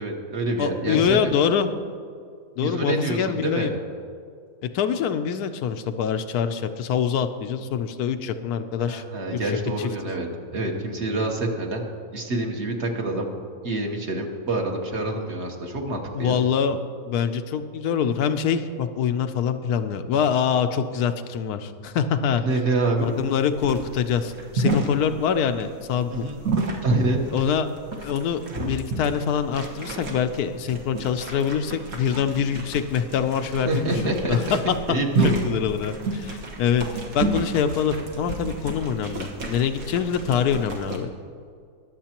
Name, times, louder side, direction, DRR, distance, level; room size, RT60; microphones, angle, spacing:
voice 1, 0.0-1.3 2.6-3.7 8.8-11.8 12.1-13.3 13.6-16.4 22.4-23.1 26.1-26.4 26.8-27.2 33.6-34.4 34.9-35.4, right 2 dB, 50° right, 1 dB, 1.4 m, -26 dB
voice 2, 0.6-1.7 2.6-3.7 4.7-9.0 9.4-9.9 16.1-22.4 23.0-26.3 27.3-27.7 28.0-28.4 28.6-33.9 34.3-34.7 35.2-36.8 37.1-41.1, left 7 dB, 85° left, 9 dB, 1.1 m, -24 dB
sound 1, 23.0-41.0, right 3 dB, 70° right, 1.8 m, -31 dB
22.5 x 7.6 x 2.9 m, 2.2 s
omnidirectional pair, 1.6 m